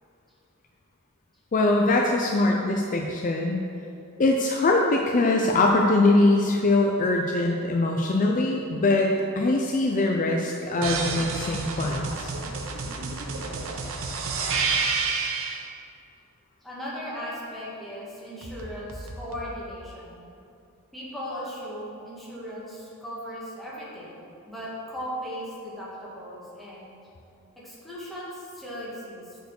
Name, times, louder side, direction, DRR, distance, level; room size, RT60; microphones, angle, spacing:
voice 1, 1.5-3.6 4.2-12.3, left 2 dB, 35° left, 0 dB, 0.5 m, -22 dB
sound 1, 10.8-15.7 18.4-19.5, right 4 dB, 65° right, 0.8 m, -30 dB
voice 2, 16.6-20.2 20.9-26.9 27.6-29.4, equal, ahead, -8 dB, 1.7 m, -37 dB
6.7 x 4.6 x 6.4 m, 2.6 s
head